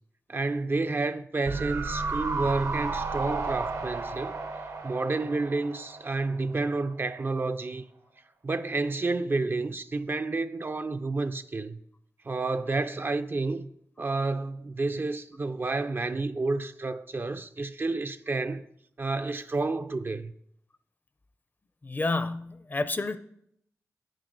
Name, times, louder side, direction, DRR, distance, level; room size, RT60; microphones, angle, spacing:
voice 1, 0.3-4.4 4.8-7.8 8.4-11.8 12.2-13.7 14.0-18.6 19.0-20.3, right 3 dB, 40° right, 0.4 m, -30 dB
sound 1, 1.5-6.7 7.0-7.1, right 3 dB, 65° right, 1.0 m, -33 dB
voice 2, 21.8-23.2, left 2 dB, 30° left, 0.5 m, -29 dB
9.9 x 8.9 x 3.9 m
wide cardioid pair, 95°, 6 cm